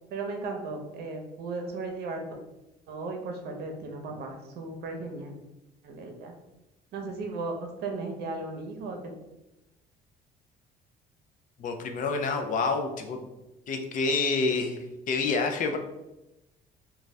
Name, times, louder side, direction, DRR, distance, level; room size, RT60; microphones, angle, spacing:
voice 1, 0.1-2.2 2.9-5.3 5.8-6.3 6.9-9.0, right 3 dB, 70° right, 3 dB, 0.7 m, -36 dB
voice 2, 11.6-13.2 13.7-15.8, left 4 dB, 50° left, 5 dB, 0.5 m, -28 dB
2.6 x 2.2 x 3.2 m, 0.94 s
cardioid pair, 110°, 17 cm